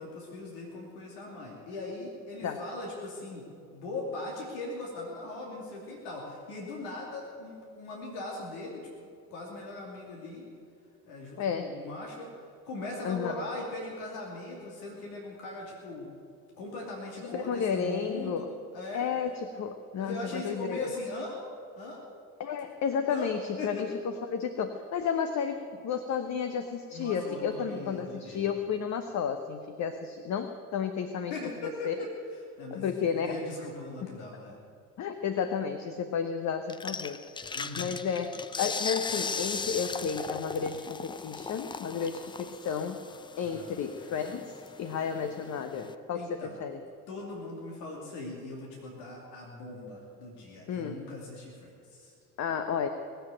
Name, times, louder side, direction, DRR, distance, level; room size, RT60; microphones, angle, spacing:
voice 1, 0.0-3.5 3.7-8.9 9.3-10.5 11.0-16.1 16.6-19.1 19.9-21.4 21.8-22.0 23.1-23.9 26.9-28.4 31.3-34.6 37.5-37.9 43.4-43.8 46.1-46.6 47.1-52.1, left 2 dB, 65° left, -1 dB, 2.7 m, -40 dB
voice 2, 11.4-11.8 13.0-13.4 17.2-18.5 18.9-20.9 22.4-31.3 31.8-31.9 32.7-33.4 35.0-37.2 37.8-43.0 43.4-46.8 50.7-51.0 52.4-52.9, left 7 dB, 40° left, 8 dB, 1.0 m, -32 dB
sound 1, 36.7-45.9, left 4 dB, 10° left, 0.4 m, -38 dB
19.0 x 7.9 x 9.0 m, 2.3 s
figure-of-eight pair, 55°, 45 cm